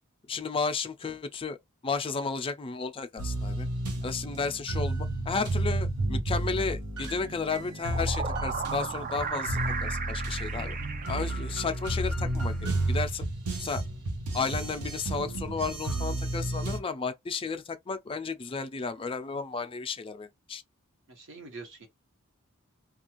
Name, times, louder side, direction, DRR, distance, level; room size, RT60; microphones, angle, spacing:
voice 1, 0.3-1.6 1.8-3.7 4.0-10.8 11.1-13.3 13.6-13.8 14.3-20.6, left 4 dB, 25° left, 0.4 m, -33 dB
sound 1, 3.2-16.8, right 1 dB, 85° right, 0.8 m, -32 dB
sound 2, 7.6-12.0, right 6 dB, 40° right, 0.4 m, -36 dB
voice 2, 21.1-21.9, right 3 dB, 60° right, 1.1 m, -44 dB
2.4 x 2.3 x 3.0 m
head